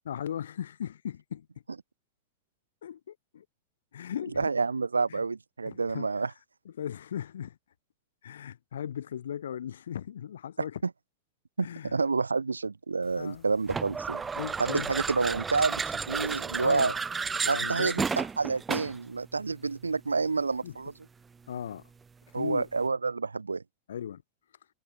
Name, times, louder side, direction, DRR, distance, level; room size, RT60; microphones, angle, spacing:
voice 1, 0.0-1.5 2.8-3.4 3.9-4.5 5.1-5.2 5.6-6.1 6.6-7.6 8.2-10.8 11.6-12.0 13.2-13.5 14.3-14.9 16.6-17.0 17.4-18.1 20.6-20.8 21.5-21.9 22.3-22.7 23.9-24.2, left 9 dB, 65° left, 1.4 m, -37 dB
voice 2, 4.4-6.3 11.6-14.2 14.6-16.9 17.5-20.9 22.3-23.6, right 4 dB, 75° right, 0.5 m, -29 dB
sound 1, 13.7-19.1, right 5 dB, 15° right, 0.9 m, -32 dB
figure-of-eight pair, 90°, 0 cm